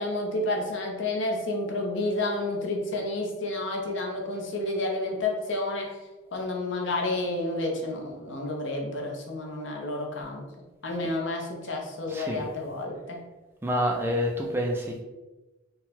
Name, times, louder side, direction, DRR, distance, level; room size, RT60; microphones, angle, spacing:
voice 1, 0.0-5.9 6.3-10.4 10.8-13.2, left 2 dB, 65° left, 0 dB, 0.8 m, -30 dB
voice 2, 12.1-12.5 13.6-15.0, equal, 10° right, 0 dB, 0.3 m, -28 dB
3.9 x 2.2 x 4.1 m, 1.1 s
head